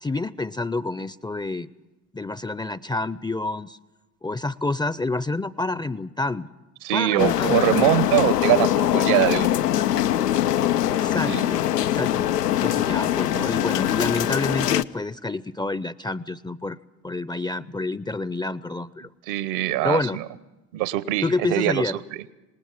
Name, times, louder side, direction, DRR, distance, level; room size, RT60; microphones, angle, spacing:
voice 1, 0.0-1.7 2.1-3.8 4.2-6.5 6.9-7.6 10.9-12.3 12.6-16.8 17.0-19.1 19.8-20.2 21.2-22.0, left 2 dB, 10° left, 18 dB, 0.6 m, -28 dB
voice 2, 6.8-9.6 11.3-11.4 19.3-20.2 20.7-21.8, right 15 dB, 65° right, 17 dB, 1.2 m, -23 dB
sound 1, 7.2-14.8, left 12 dB, 90° left, 0.6 m, -22 dB
26.0 x 19.5 x 6.0 m, 1.0 s
figure-of-eight pair, 60°, 46 cm